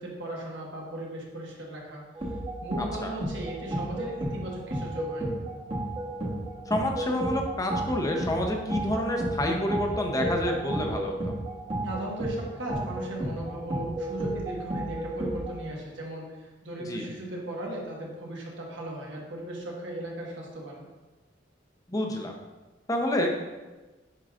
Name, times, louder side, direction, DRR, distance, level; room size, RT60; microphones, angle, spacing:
voice 1, 0.0-2.0 2.6-5.3 11.8-20.8, right 1 dB, 75° right, -2 dB, 1.5 m, -37 dB
sound 1, 2.2-15.6, right 1 dB, 30° right, 1.2 m, -33 dB
voice 2, 2.8-3.1 6.7-11.3 16.8-17.1 21.9-22.3 22.9-23.3, left 1 dB, 20° left, 2 dB, 0.7 m, -28 dB
9.0 x 4.8 x 2.5 m, 1.2 s
head